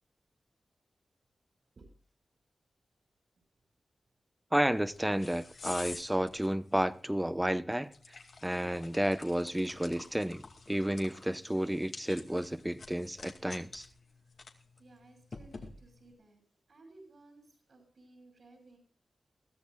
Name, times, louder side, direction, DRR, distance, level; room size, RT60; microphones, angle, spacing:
voice 1, 4.5-7.9 8.4-13.9, right 1 dB, 10° right, 0.9 m, -31 dB
sound 1, 4.7-16.1, left 3 dB, 70° left, 2.2 m, -50 dB
voice 2, 14.8-16.4 16.7-18.8, right 2 dB, 70° right, 5.6 m, -58 dB
21.5 x 14.0 x 2.4 m
cardioid pair, 55°, 0 cm